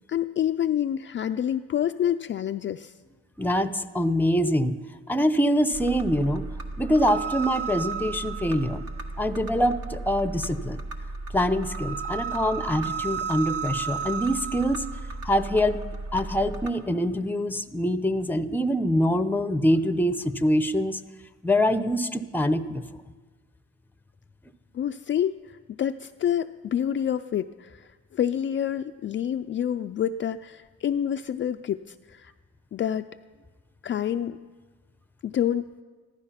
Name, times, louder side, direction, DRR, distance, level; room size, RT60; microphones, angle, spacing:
voice 1, 0.1-2.9 24.7-32.3 32.7-33.1 33.8-34.4 35.2-35.7, left 10 dB, 40° left, 7 dB, 0.4 m, -28 dB
voice 2, 3.4-4.8 5.1-6.5 6.8-8.8 9.2-10.8 11.3-14.8 15.2-15.8 16.1-21.0 21.4-22.8, equal, 5° left, 11 dB, 0.7 m, -24 dB
sound 1, 5.7-16.7, right 4 dB, 50° right, 1.5 m, -34 dB
15.0 x 12.0 x 5.7 m, 1.4 s
cardioid pair, 90°, 30 cm